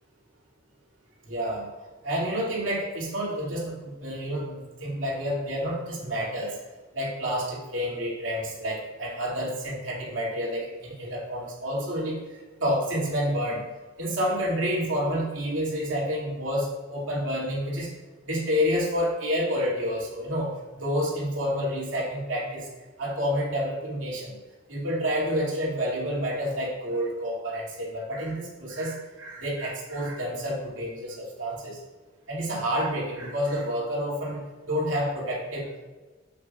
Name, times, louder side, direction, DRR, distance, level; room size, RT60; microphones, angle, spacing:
voice 1, 1.3-1.7 2.0-6.5 6.9-12.2 12.6-13.6 14.0-17.9 18.2-20.5 20.8-22.6 23.0-24.3 24.7-31.8 32.3-34.4 34.7-35.6, equal, 75° right, -5 dB, 2.5 m, -29 dB
8.0 x 7.9 x 2.4 m, 1.2 s
head